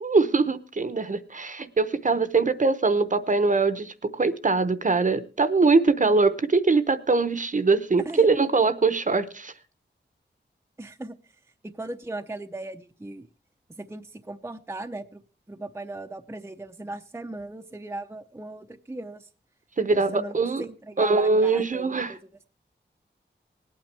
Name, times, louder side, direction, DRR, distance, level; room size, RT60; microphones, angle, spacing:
voice 1, 0.0-9.5 19.8-20.6 21.0-22.1, right 4 dB, 45° right, 0.8 m, -22 dB
voice 2, 10.8-11.2 11.6-13.3 13.8-15.2 15.5-19.3 19.9-22.3, right 2 dB, 15° right, 0.6 m, -38 dB
20.0 x 8.9 x 3.3 m
wide cardioid pair, 105°, 19 cm